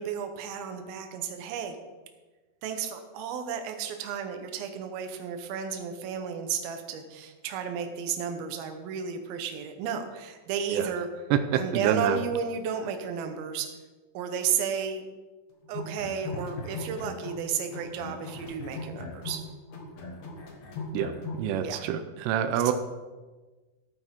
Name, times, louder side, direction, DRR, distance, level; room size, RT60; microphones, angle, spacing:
voice 1, 0.0-1.8 2.6-11.1 11.6-13.7 14.1-15.0 15.7-19.4 21.6-21.9 22.6-22.7, right 7 dB, 70° right, 6 dB, 2.7 m, -33 dB
voice 2, 11.3-12.2 20.9-21.1 21.4-22.7, right 9 dB, 90° right, 9 dB, 2.9 m, -26 dB
sound 1, 15.6-17.4 17.7-21.5, left 3 dB, 55° left, 2.4 m, -38 dB
15.0 x 9.1 x 3.7 m, 1.3 s
omnidirectional pair, 4.7 m